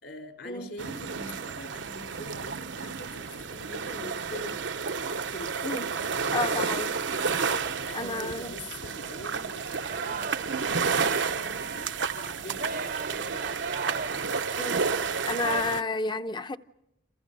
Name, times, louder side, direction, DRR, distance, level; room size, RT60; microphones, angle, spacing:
voice 1, 0.0-4.5 5.3-6.8 7.4-13.7, left 1 dB, 60° left, 4.2 m, -44 dB
sound 1, 0.8-15.8, right 5 dB, 75° right, 0.9 m, -31 dB
voice 2, 6.3-6.9 7.9-8.5 14.6-14.8 15.3-16.6, left 3 dB, 25° left, 0.8 m, -31 dB
Singing, 9.8-10.6 10.8-15.6, right 4 dB, 50° right, 0.8 m, -37 dB
29.0 x 27.5 x 5.5 m
head